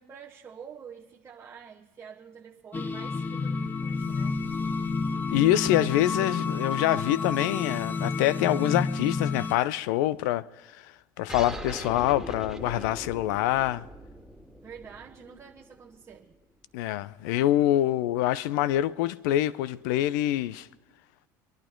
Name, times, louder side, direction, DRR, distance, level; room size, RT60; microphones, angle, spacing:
voice 1, 0.0-4.4 14.6-16.4, right 7 dB, 30° right, 1.2 m, -47 dB
sound 1, 2.7-9.5, left 4 dB, 20° left, 0.8 m, -30 dB
voice 2, 5.3-10.4 10.8-13.8 16.7-20.7, left 13 dB, 70° left, 0.6 m, -25 dB
sound 2, 11.3-16.3, right 1 dB, 5° right, 1.9 m, -41 dB
23.0 x 11.5 x 4.6 m
hypercardioid pair, 80°, 10 cm